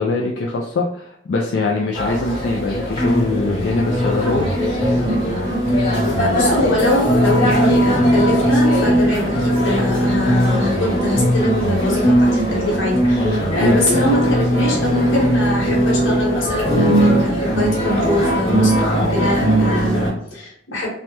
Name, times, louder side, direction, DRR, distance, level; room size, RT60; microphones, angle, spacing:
voice 1, 0.0-4.5 13.6-13.8, left 2 dB, 65° left, -1 dB, 0.3 m, -22 dB
sound 1, 1.9-20.1, equal, 25° left, 1.0 m, -18 dB
voice 2, 6.2-20.9, left 1 dB, 85° left, -3 dB, 1.1 m, -23 dB
3.2 x 2.1 x 2.8 m, 0.73 s
head